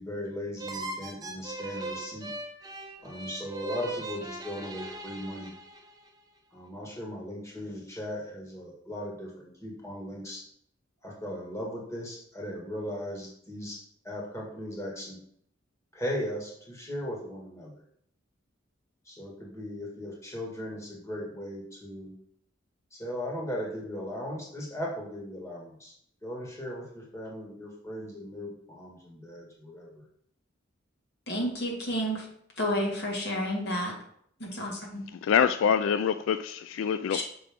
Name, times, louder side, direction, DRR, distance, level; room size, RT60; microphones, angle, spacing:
voice 1, 0.0-2.3 3.0-5.5 6.5-10.4 11.0-13.8 14.0-15.2 15.9-17.8 19.1-22.1 22.9-25.9 26.2-30.0, equal, 15° left, 1.8 m, -38 dB
sound 1, 0.6-6.1, right 2 dB, 20° right, 0.8 m, -39 dB
voice 2, 31.3-32.3 32.6-33.9 34.4-35.0 37.1-37.2, equal, 55° left, 2.1 m, -30 dB
voice 3, 35.1-37.2, left 7 dB, 85° left, 0.3 m, -25 dB
6.6 x 5.8 x 3.6 m
head